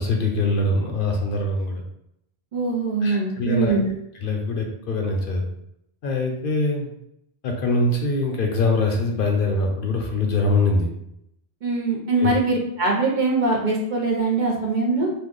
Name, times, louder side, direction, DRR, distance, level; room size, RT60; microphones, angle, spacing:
voice 1, 0.0-1.8 3.0-3.7 4.2-5.4 6.0-6.9 7.4-10.9 12.2-12.3, left 2 dB, 65° left, 2 dB, 0.7 m, -23 dB
voice 2, 2.5-3.9 11.6-15.1, right 3 dB, 55° right, -1 dB, 0.6 m, -22 dB
2.6 x 2.3 x 3.7 m, 0.77 s
omnidirectional pair, 1.1 m